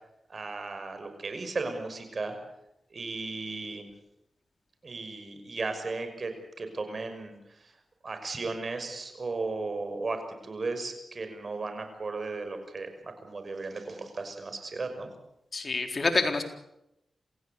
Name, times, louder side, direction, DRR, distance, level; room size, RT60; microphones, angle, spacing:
voice 1, 0.3-2.4 2.9-3.9 4.8-7.3 8.0-15.1, right 3 dB, 55° right, 7 dB, 6.0 m, -35 dB
voice 2, 15.5-16.4, left 3 dB, 55° left, 5 dB, 4.0 m, -27 dB
27.5 x 16.0 x 8.3 m, 0.84 s
cardioid pair, 50°, 0 cm